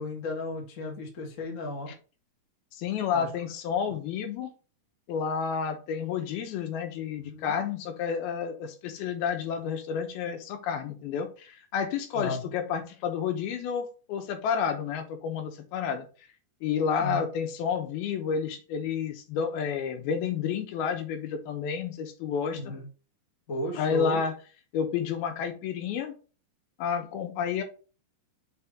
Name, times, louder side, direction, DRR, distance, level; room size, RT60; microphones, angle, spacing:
voice 1, 0.0-1.9 3.1-3.3 7.3-7.5 12.1-12.4 17.0-17.2 22.5-22.8 23.5-24.2, left 2 dB, 60° left, 0 dB, 0.8 m, -34 dB
voice 2, 2.7-4.5 5.1-16.1 16.6-22.7 23.8-24.3 24.7-26.1 26.8-27.6, left 7 dB, 75° left, 6 dB, 2.7 m, -30 dB
5.9 x 4.5 x 3.6 m, 0.35 s
omnidirectional pair, 4.5 m